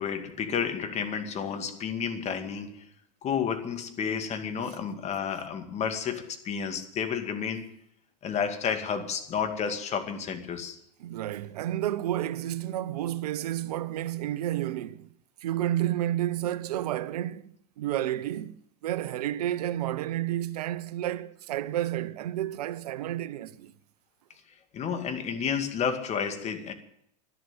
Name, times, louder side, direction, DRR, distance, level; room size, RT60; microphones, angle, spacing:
voice 1, 0.0-2.9 3.2-7.8 8.2-10.8 24.7-26.7, left 7 dB, 30° left, 2.3 m, -31 dB
voice 2, 11.0-15.1 15.4-23.7, right 13 dB, 70° right, 1.0 m, -31 dB
12.0 x 11.5 x 8.9 m
hypercardioid pair, 100°, 21 cm